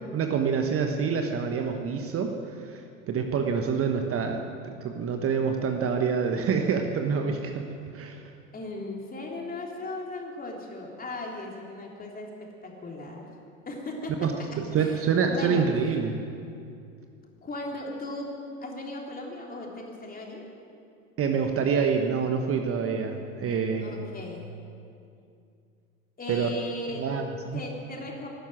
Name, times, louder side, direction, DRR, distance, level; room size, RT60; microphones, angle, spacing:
voice 1, 0.1-4.4 4.8-7.7 7.9-8.3 14.2-14.3 14.6-16.2 21.2-24.0 26.3-26.5 26.9-27.7, right 6 dB, 35° right, 4 dB, 1.2 m, -27 dB
voice 2, 8.5-13.3 13.6-15.7 17.4-20.5 23.8-24.4 26.2-27.0 27.5-28.3, left 2 dB, 20° left, 0 dB, 3.3 m, -37 dB
12.5 x 12.0 x 9.1 m, 2.5 s
hypercardioid pair, 80°, 41 cm